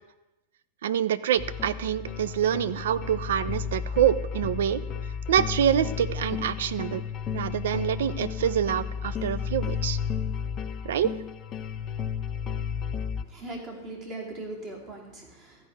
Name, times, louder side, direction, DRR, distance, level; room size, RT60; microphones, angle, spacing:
voice 1, 0.8-4.8 5.3-7.0 7.3-10.0 10.8-11.1, right 10 dB, 60° right, 14 dB, 0.5 m, -26 dB
sound 1, 1.4-13.2, left 7 dB, 30° left, 0.6 m, -33 dB
voice 2, 13.2-15.7, right 2 dB, 35° right, -2 dB, 2.8 m, -39 dB
14.0 x 4.9 x 7.9 m, 0.98 s
figure-of-eight pair, 90°, 0 cm